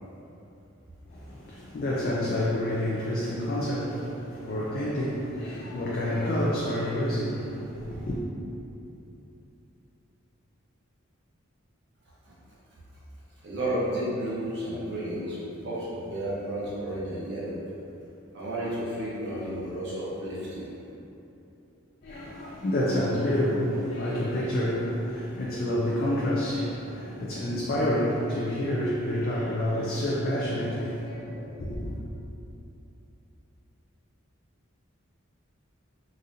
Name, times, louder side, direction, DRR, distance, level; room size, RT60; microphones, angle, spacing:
voice 1, 1.1-8.2 22.0-32.0, left 1 dB, 45° left, -6 dB, 0.4 m, -28 dB
voice 2, 13.4-17.6 18.3-20.7, right 1 dB, 55° right, -9 dB, 0.8 m, -32 dB
4.1 x 2.5 x 2.5 m, 2.8 s
head